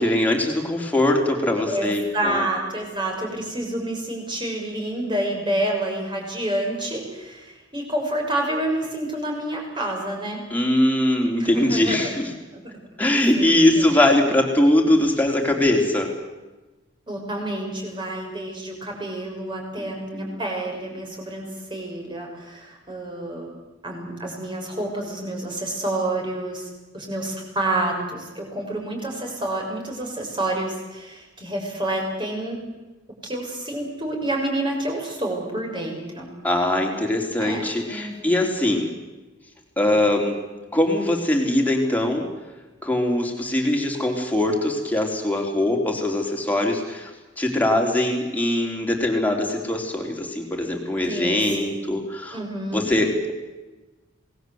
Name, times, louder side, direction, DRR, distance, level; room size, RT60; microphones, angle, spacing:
voice 1, 0.0-2.4 10.5-12.3 13.0-16.1 19.8-20.4 36.4-38.9 39.8-40.4 40.7-42.3 42.8-47.1 47.4-52.4 52.7-53.3, left 1 dB, 10° left, 1 dB, 3.9 m, -21 dB
voice 2, 1.6-10.4 11.4-12.1 12.5-13.0 13.3-14.0 17.1-23.5 23.8-32.6 33.2-36.3 37.4-37.6 37.9-38.3 51.0-51.8 52.3-52.9, right 1 dB, 25° right, 0 dB, 6.6 m, -29 dB
27.5 x 19.5 x 8.1 m, 1.1 s
head